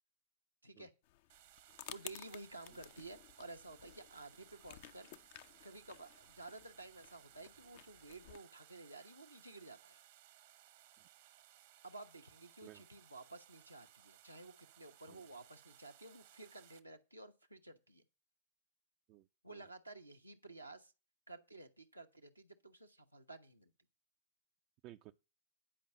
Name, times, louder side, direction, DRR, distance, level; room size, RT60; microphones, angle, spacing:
sound 1, 1.0-8.4, left 13 dB, 50° left, 0.5 m, -56 dB
sound 2, 1.3-16.8, right 13 dB, 55° right, 1.0 m, -63 dB
voice 1, 1.9-5.1 5.6-10.0 11.8-18.0 19.4-20.9 21.3-23.7, right 2 dB, 85° right, 1.0 m, -53 dB
voice 2, 19.1-19.6 24.8-25.1, right 15 dB, 40° right, 0.4 m, -57 dB
10.0 x 5.2 x 6.8 m
figure-of-eight pair, 90°, 0 cm